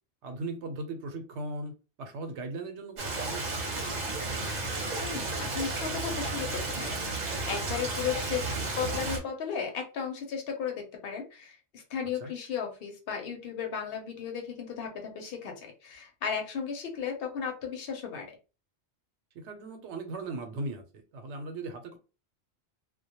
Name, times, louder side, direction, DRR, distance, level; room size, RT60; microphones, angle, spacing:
voice 1, 0.2-1.7 2.0-3.4 3.7-4.1 12.2-12.3 19.3-22.0, right 2 dB, 90° right, 0.9 m, -38 dB
Stream, 3.0-9.2, right 2 dB, 45° right, 0.8 m, -33 dB
voice 2, 5.0-6.5 6.8-8.4 8.8-18.4, left 7 dB, 60° left, 0.8 m, -35 dB
2.2 x 2.1 x 2.8 m
omnidirectional pair, 1.1 m